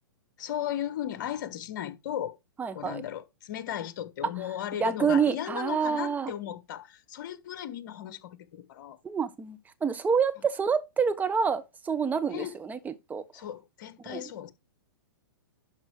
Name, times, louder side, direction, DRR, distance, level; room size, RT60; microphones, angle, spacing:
voice 1, 0.4-2.4 2.7-9.0 12.3-12.6 13.3-14.5, left 10 dB, 55° left, 1.4 m, -36 dB
voice 2, 2.6-3.0 4.8-6.3 9.0-13.2 14.1-14.2, right 6 dB, 15° right, 1.3 m, -27 dB
11.5 x 5.4 x 4.9 m
hypercardioid pair, 115°, 12 cm